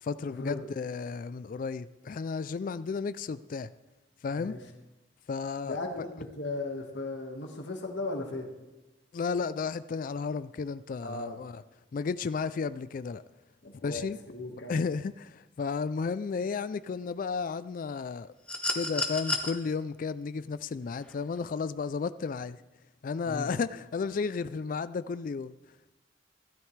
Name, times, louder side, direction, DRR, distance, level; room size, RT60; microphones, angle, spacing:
voice 1, 0.0-3.7 4.2-4.5 5.3-5.8 9.1-11.6 11.9-13.2 13.8-14.2 14.7-18.3 18.7-22.6 23.0-25.5, left 5 dB, 45° left, 15 dB, 0.3 m, -33 dB
voice 2, 5.6-8.5 11.0-11.4 13.6-14.8 23.2-23.5, left 2 dB, 75° left, 2 dB, 1.6 m, -37 dB
sound 1, 18.5-19.5 21.0-21.1, left 2 dB, 5° left, 1.0 m, -31 dB
16.0 x 12.5 x 3.3 m, 1.1 s
head